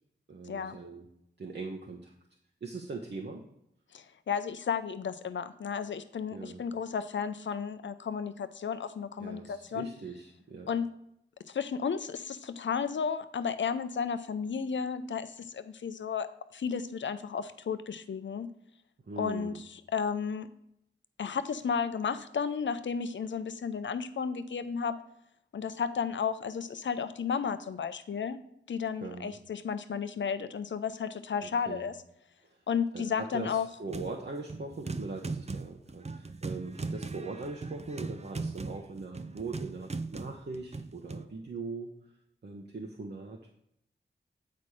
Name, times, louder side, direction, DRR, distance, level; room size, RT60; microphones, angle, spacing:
voice 1, 0.3-1.1 1.4-2.1 2.6-3.4 6.3-6.6 9.2-10.7 19.1-19.6 29.0-29.3 31.7-31.9 32.9-41.9 42.4-43.5, right 3 dB, 60° right, 0 dB, 0.9 m, -41 dB
voice 2, 3.9-9.9 10.7-10.9 11.5-16.3 16.5-18.5 19.2-20.5 21.2-25.0 25.5-28.4 28.7-31.9 32.7-33.7, left 6 dB, 75° left, 11 dB, 0.5 m, -33 dB
sound 1, 33.9-34.2 34.5-41.2, right 3 dB, 35° right, 0.5 m, -39 dB
8.4 x 4.2 x 4.8 m, 0.77 s
cardioid pair, 45°, 19 cm